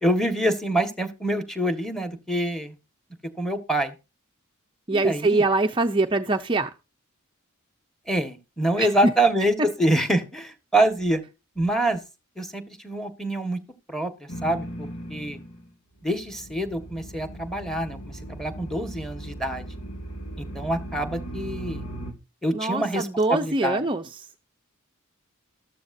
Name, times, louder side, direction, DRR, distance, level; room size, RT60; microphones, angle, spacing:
voice 1, 0.0-2.7 3.4-3.9 4.9-5.4 8.1-11.2 11.5-12.0 12.4-13.6 13.9-15.4 16.0-19.7 20.4-21.8 22.4-23.8, right 1 dB, ahead, 1.7 m, -26 dB
voice 2, 4.9-6.7 8.8-9.1 22.5-24.3, right 2 dB, 25° right, 0.6 m, -23 dB
sound 1, 14.3-15.7 16.0-22.1, right 1 dB, 65° left, 2.8 m, -38 dB
14.0 x 13.0 x 2.8 m
head